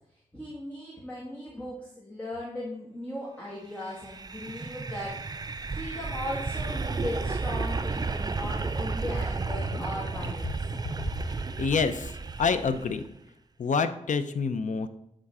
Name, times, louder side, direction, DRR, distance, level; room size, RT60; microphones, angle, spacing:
voice 1, 0.3-5.1 5.7-10.5, left 1 dB, 10° left, -6 dB, 1.9 m, -38 dB
sound 1, 3.9-13.1, right 4 dB, 30° right, 0.4 m, -32 dB
voice 2, 11.3-12.1 12.4-13.0 13.6-14.9, left 5 dB, 70° left, 10 dB, 0.6 m, -27 dB
9.8 x 3.8 x 4.9 m, 0.77 s
wide cardioid pair, 80°, 13 cm